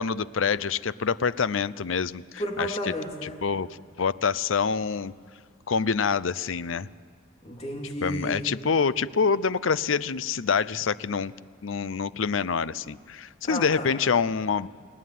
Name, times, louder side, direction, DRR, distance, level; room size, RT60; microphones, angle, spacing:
voice 1, 0.0-2.2 2.6-2.8 3.4-3.7 4.0-5.1 5.7-6.9 8.0-11.3 11.6-14.7, left 5 dB, 75° left, 17 dB, 0.6 m, -26 dB
voice 2, 2.4-3.4 7.4-8.5 13.4-13.9, equal, 30° left, 1 dB, 2.6 m, -32 dB
30.0 x 19.0 x 9.3 m, 2.3 s
head